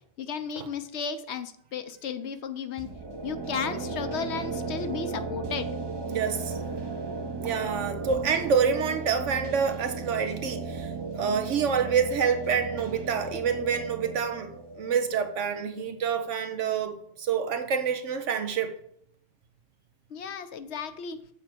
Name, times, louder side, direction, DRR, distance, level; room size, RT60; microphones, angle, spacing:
voice 1, 0.2-2.9 3.2-5.7 20.1-21.2, left 6 dB, 70° left, 0.9 m, -34 dB
sound 1, 2.8-16.5, right 3 dB, 25° right, 0.6 m, -35 dB
voice 2, 6.1-6.6 7.4-14.5 14.8-18.7, right 6 dB, 85° right, 1.2 m, -27 dB
7.4 x 4.5 x 6.6 m
omnidirectional pair, 1.2 m